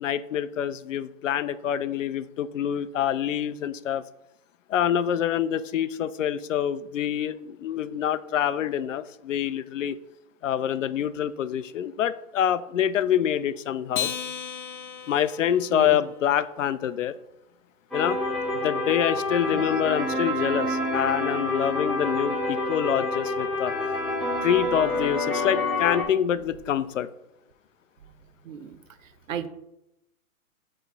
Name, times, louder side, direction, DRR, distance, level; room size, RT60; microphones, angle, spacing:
voice 1, 0.0-4.0 4.7-10.0 10.4-14.1 15.1-17.1 17.9-18.2 18.5-23.7 24.4-27.1, left 9 dB, 60° left, 14 dB, 0.5 m, -26 dB
Acoustic guitar, 13.9-16.6, left 8 dB, 35° left, 0.8 m, -35 dB
sound 1, 17.9-26.0, left 1 dB, ahead, 1.0 m, -28 dB
voice 2, 28.5-28.8 29.3-29.5, right 8 dB, 60° right, 11 dB, 0.8 m, -33 dB
7.8 x 3.3 x 4.0 m, 0.85 s
hypercardioid pair, 145°, 44 cm